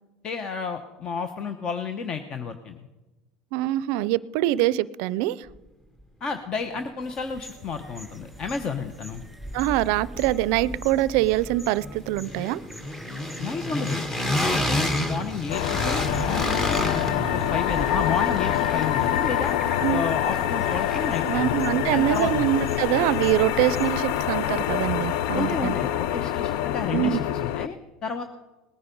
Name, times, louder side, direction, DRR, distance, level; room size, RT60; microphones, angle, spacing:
voice 1, 0.2-2.8 6.2-9.2 13.4-14.0 14.4-16.1 16.7-19.6 19.9-21.6 21.9-22.5 25.3-28.2, left 5 dB, 40° left, 8 dB, 0.9 m, -31 dB
voice 2, 3.5-5.5 9.5-12.6 19.8-20.0 21.2-25.7 26.9-27.2, right 14 dB, 70° right, 19 dB, 0.4 m, -24 dB
sound 1, 7.0-24.0, equal, ahead, 2.5 m, -49 dB
sound 2, 7.3-7.4 7.7-8.9 9.1-21.3, left 1 dB, 20° left, 1.6 m, -31 dB
sound 3, 15.5-27.7, left 11 dB, 75° left, 0.5 m, -26 dB
19.0 x 9.6 x 5.3 m, 1.1 s
supercardioid pair, 110°, 2 cm